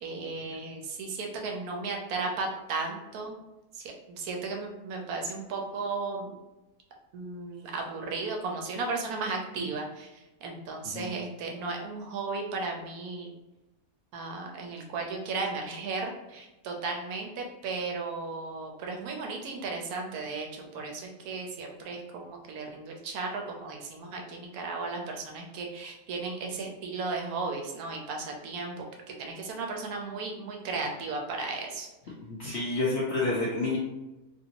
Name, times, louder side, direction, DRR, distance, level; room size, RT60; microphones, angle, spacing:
voice 1, 0.0-3.4 3.8-6.4 7.1-13.3 14.1-28.8 29.2-31.9, right 3 dB, 70° right, 2 dB, 1.0 m, -35 dB
voice 2, 32.3-33.8, left 2 dB, 65° left, -5 dB, 0.6 m, -29 dB
3.0 x 2.6 x 2.8 m, 1.0 s
omnidirectional pair, 1.7 m